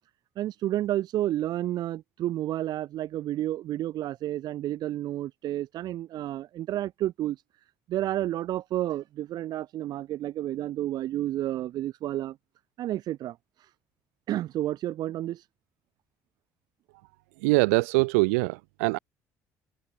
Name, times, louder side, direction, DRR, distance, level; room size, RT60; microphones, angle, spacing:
voice 1, 0.4-7.4 7.9-12.4 12.8-13.4 14.3-15.4, right 13 dB, 65° right, 3.9 m, -30 dB
voice 2, 17.4-19.0, right 28 dB, 85° right, 2.1 m, -23 dB
supercardioid pair, 70°, 7 cm